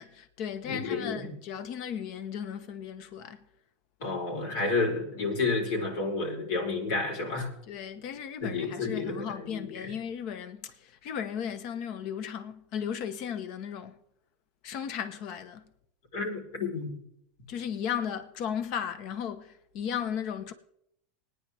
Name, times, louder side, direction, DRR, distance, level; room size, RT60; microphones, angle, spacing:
voice 1, 0.0-3.4 7.7-14.0 14.6-15.6 17.5-20.5, left 8 dB, 60° left, 1.2 m, -35 dB
voice 2, 0.6-1.3 4.0-7.5 8.4-9.9 16.1-17.0, left 3 dB, 75° left, 4.3 m, -31 dB
20.0 x 9.7 x 3.5 m
supercardioid pair, 110°, 0 cm